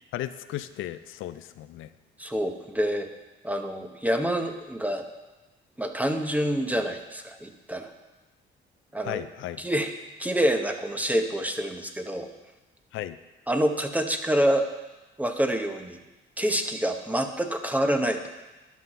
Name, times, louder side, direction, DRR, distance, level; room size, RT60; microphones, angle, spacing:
voice 1, 0.1-1.9 9.1-9.6 12.9-13.2, left 13 dB, 80° left, 12 dB, 0.5 m, -35 dB
voice 2, 2.2-3.1 3.4-5.0 5.8-7.9 8.9-9.2 9.6-9.9 10.2-12.3 13.5-14.7 15.2-16.0 16.4-18.2, equal, 10° right, 6 dB, 1.0 m, -27 dB
11.5 x 6.0 x 5.4 m, 1.1 s
cardioid pair, 90°, 20 cm